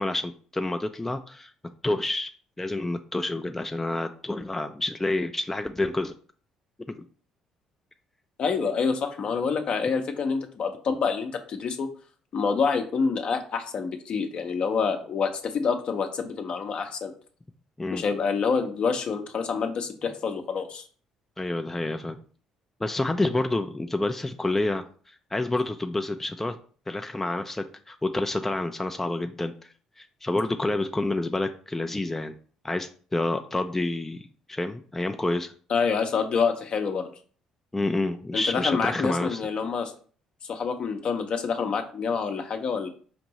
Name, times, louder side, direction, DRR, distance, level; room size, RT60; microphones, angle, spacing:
voice 1, 0.0-1.5 1.8-6.1 17.8-18.0 21.4-22.2 22.8-26.6 26.9-29.7 30.0-32.3 32.6-35.5 37.7-39.4, left 2 dB, 15° left, 6 dB, 0.4 m, -28 dB
voice 2, 8.4-11.9 12.3-17.1 17.9-20.8 35.7-37.1 38.3-39.9 40.5-42.9, left 5 dB, 55° left, 6 dB, 0.7 m, -27 dB
5.1 x 2.6 x 3.0 m, 0.43 s
hypercardioid pair, 55°, 2 cm